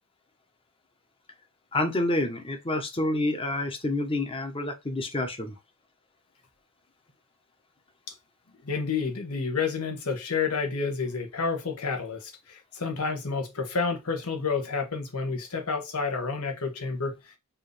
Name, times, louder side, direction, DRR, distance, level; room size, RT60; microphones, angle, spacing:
voice 1, 1.7-5.5, left 2 dB, 25° left, 0.9 m, -28 dB
voice 2, 8.6-17.4, left 4 dB, 75° left, 1.2 m, -30 dB
4.7 x 2.7 x 3.3 m
head